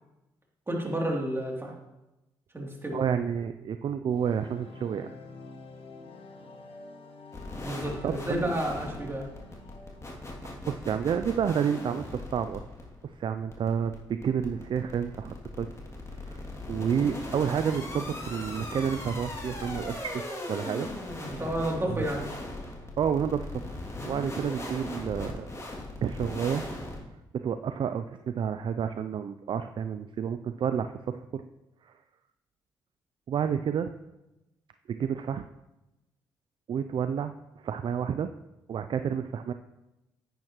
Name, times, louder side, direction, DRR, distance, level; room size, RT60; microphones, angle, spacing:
voice 1, 0.7-1.7 2.5-3.0 7.6-9.3 21.4-22.3, right 1 dB, 20° right, -1 dB, 3.0 m, -30 dB
voice 2, 2.9-5.1 8.0-8.5 10.7-12.6 13.0-15.7 16.2-16.4 16.7-20.2 20.5-20.9 21.9-22.0 23.0-23.8 24.0-25.5 26.0-26.7 27.3-30.9 31.3-31.4 31.8-31.9 33.3-33.9 34.9-35.4 36.7-38.3 38.7-39.5, right 7 dB, 50° right, 9 dB, 0.4 m, -30 dB
sound 1, 4.1-11.0, left 3 dB, 55° left, 1.6 m, -48 dB
sound 2, 7.3-27.0, left 2 dB, 25° left, 2.6 m, -39 dB
10.0 x 9.1 x 3.0 m, 0.97 s
hypercardioid pair, 50°, 11 cm